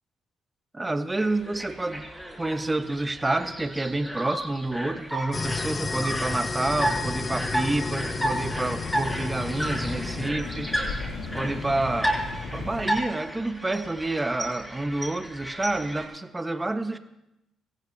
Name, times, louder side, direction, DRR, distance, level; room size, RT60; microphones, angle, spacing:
voice 1, 0.7-2.0 2.4-11.1 11.3-12.1 12.5-17.0, right 2 dB, 20° right, 8 dB, 1.3 m, -28 dB
sound 1, 1.1-16.0, right 1 dB, 5° left, 7.2 m, -33 dB
sound 2, 5.3-10.3, left 3 dB, 30° left, 0.5 m, -32 dB
sound 3, 6.6-13.0, left 3 dB, 85° left, 2.1 m, -36 dB
26.5 x 15.5 x 2.9 m, 0.86 s
cardioid pair, 70°, 0 cm